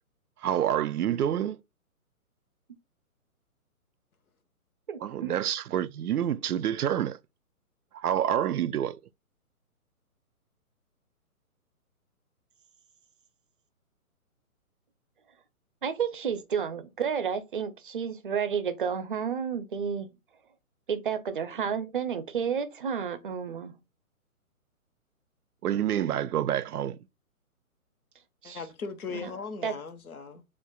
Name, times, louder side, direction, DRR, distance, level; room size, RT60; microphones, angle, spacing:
voice 1, 0.4-1.6 5.0-7.2 7.9-9.0 25.6-27.0, right 10 dB, 85° right, 0.6 m, -27 dB
voice 2, 4.9-5.3 15.8-20.1 20.9-23.7 28.4-28.6 29.1-29.7, right 7 dB, 35° right, 0.5 m, -31 dB
voice 3, 28.4-30.4, left 5 dB, 75° left, 1.2 m, -38 dB
7.1 x 2.5 x 2.2 m
hypercardioid pair, 160°, 44 cm